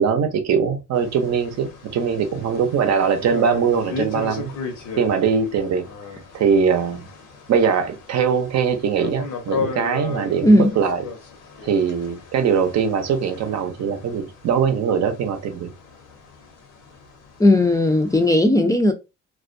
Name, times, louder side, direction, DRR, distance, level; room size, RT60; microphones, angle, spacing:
voice 1, 0.0-4.5 5.0-5.9 6.3-7.1 7.5-11.0 11.6-15.7, right 6 dB, 60° right, 0.6 m, -21 dB
sound 1, 0.9-18.3, left 5 dB, 80° left, 0.9 m, -36 dB
voice 2, 10.4-10.7 17.4-18.9, left 1 dB, 10° left, 0.4 m, -16 dB
2.3 x 2.1 x 2.5 m
cardioid pair, 90°, 30 cm